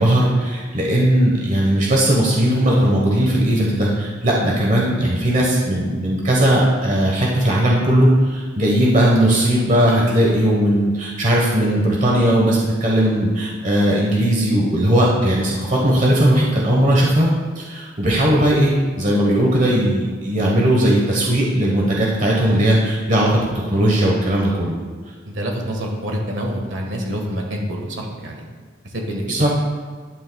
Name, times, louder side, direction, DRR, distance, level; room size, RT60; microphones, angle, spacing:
voice 1, 0.0-23.5 23.7-24.7 29.3-29.5, right 1 dB, 40° right, -3 dB, 1.2 m, -18 dB
voice 2, 25.3-28.4 28.8-29.4, equal, 70° right, 1 dB, 1.5 m, -27 dB
11.0 x 8.8 x 2.3 m, 1.6 s
head